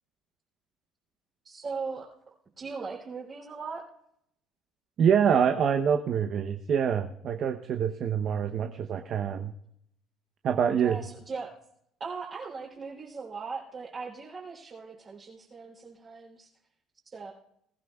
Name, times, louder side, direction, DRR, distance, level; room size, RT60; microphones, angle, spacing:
voice 1, 1.4-2.1 2.6-3.8 10.8-11.5 12.0-16.5 17.1-17.3, right 4 dB, 30° right, -6 dB, 3.3 m, -39 dB
voice 2, 5.0-9.5 10.4-11.0, right 7 dB, 45° right, 5 dB, 0.8 m, -25 dB
21.5 x 15.0 x 2.4 m, 0.73 s
cardioid pair, 140°, 0 cm